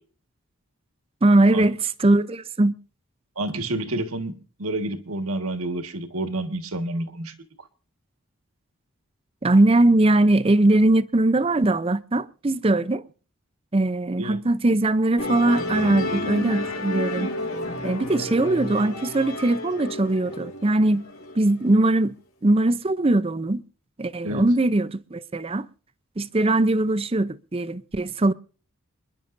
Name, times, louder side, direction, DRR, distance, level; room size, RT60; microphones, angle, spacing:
voice 1, 1.2-2.7 9.4-13.0 13.7-17.3 17.8-21.0 21.4-22.2 22.4-23.6 24.0-25.7 26.2-28.3, right 2 dB, 25° right, 0.5 m, -21 dB
voice 2, 3.4-7.3 14.2-14.4 24.2-24.5, right 1 dB, 80° right, 1.6 m, -29 dB
Musical instrument, 15.2-21.8, left 1 dB, 80° left, 3.6 m, -31 dB
28.0 x 11.0 x 2.6 m
head